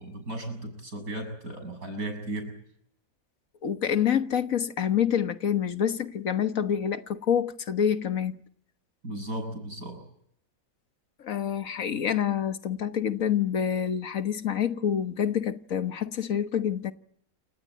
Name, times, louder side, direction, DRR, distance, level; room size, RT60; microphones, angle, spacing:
voice 1, 0.0-2.6 9.0-10.0, right 1 dB, 80° right, 7.4 m, -35 dB
voice 2, 3.6-8.4 11.2-16.9, left 8 dB, 70° left, 1.6 m, -27 dB
28.5 x 18.0 x 9.0 m
omnidirectional pair, 1.5 m